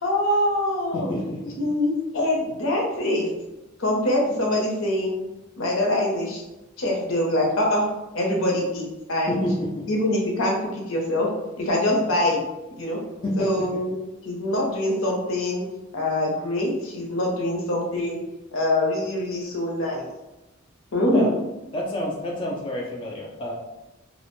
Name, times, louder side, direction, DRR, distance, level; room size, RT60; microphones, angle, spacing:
voice 1, 0.0-1.1 1.6-3.3 3.8-5.2 5.6-6.4 6.8-7.8 8.1-9.4 9.9-11.3 11.6-12.4 12.8-13.0 13.4-13.9 14.2-15.6 15.9-18.2 18.5-20.1 20.9-21.3, left 1 dB, 75° left, -1 dB, 0.7 m, -24 dB
voice 2, 0.9-1.5 9.3-9.8 13.2-13.7 21.1-21.3 21.7-23.5, equal, 25° left, -2 dB, 0.3 m, -28 dB
2.4 x 2.0 x 3.0 m, 0.98 s
head